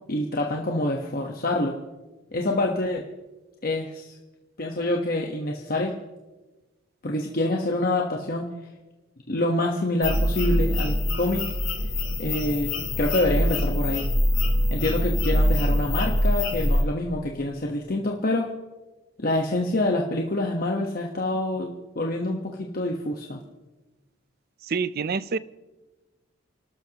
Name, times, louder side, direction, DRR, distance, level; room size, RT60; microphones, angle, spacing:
voice 1, 0.1-1.8 2.3-3.0 3.6-4.1 4.6-5.9 7.0-8.5 9.3-11.4 12.2-12.7 13.0-14.1 14.7-18.5 19.2-21.7 21.9-23.4, left 1 dB, 45° left, 1.2 m, -26 dB
sound 1, 10.0-16.8, equal, 70° left, 3.7 m, -24 dB
voice 2, 24.7-25.4, right 5 dB, 50° right, 0.5 m, -26 dB
30.0 x 12.5 x 3.0 m
head